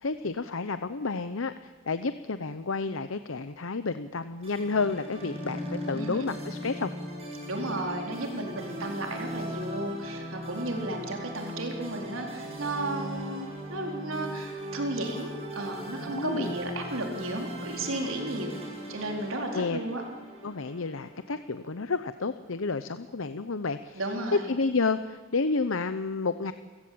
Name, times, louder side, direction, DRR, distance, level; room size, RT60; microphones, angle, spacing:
voice 1, 0.0-6.9 16.0-16.5 19.5-19.8 20.4-24.0 24.3-26.5, left 4 dB, 75° left, 11 dB, 0.8 m, -30 dB
sound 1, 4.4-21.8, equal, 30° right, 7.4 m, -39 dB
voice 2, 5.9-6.4 7.5-18.6 18.9-20.0 23.9-24.5, right 1 dB, 80° right, 2 dB, 4.2 m, -34 dB
29.5 x 16.5 x 8.7 m, 1.4 s
head